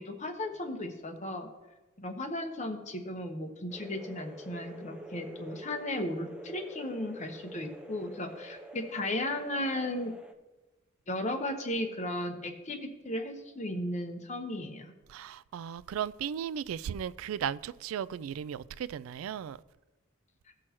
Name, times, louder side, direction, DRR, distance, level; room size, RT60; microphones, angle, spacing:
voice 1, 0.0-1.5 2.0-10.1 11.1-14.9, left 1 dB, 35° left, 1.0 m, -35 dB
sound 1, 3.7-10.3, right 1 dB, 5° right, 0.6 m, -47 dB
voice 2, 15.1-19.6, right 8 dB, 80° right, 0.3 m, -36 dB
17.0 x 6.2 x 3.0 m
head